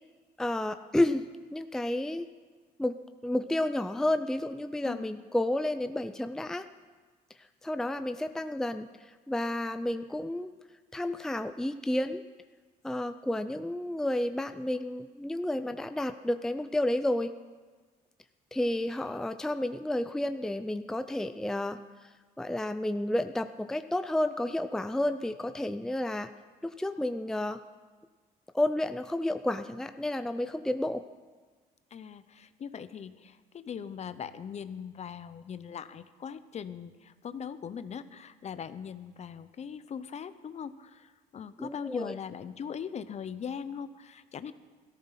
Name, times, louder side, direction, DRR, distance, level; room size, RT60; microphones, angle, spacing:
voice 1, 0.4-1.2 1.5-2.3 2.8-3.0 3.2-6.7 7.6-8.9 9.3-10.5 10.9-12.2 12.8-17.3 18.5-21.8 22.4-26.3 26.6-27.6 28.5-31.0 41.6-42.2, left 1 dB, 5° left, 9 dB, 0.5 m, -31 dB
voice 2, 4.8-5.2 31.9-44.5, left 7 dB, 40° left, 13 dB, 0.8 m, -40 dB
16.5 x 14.0 x 5.9 m, 1.4 s
cardioid pair, 110°, 17 cm